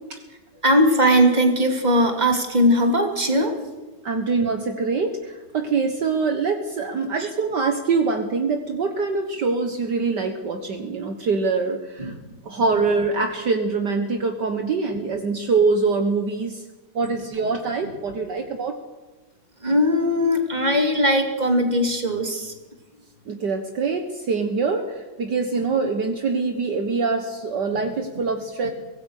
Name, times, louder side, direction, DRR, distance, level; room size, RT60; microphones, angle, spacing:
voice 1, 0.6-3.5 7.2-7.3 12.0-12.1 17.4-17.5 17.8-17.9 19.6-22.5 27.7-27.8, equal, 20° right, 4 dB, 2.9 m, -19 dB
voice 2, 4.0-12.1 12.5-16.6 17.0-18.8 23.3-28.7, right 4 dB, 60° right, 6 dB, 1.9 m, -24 dB
24.0 x 17.5 x 6.5 m, 1.2 s
omnidirectional pair, 2.2 m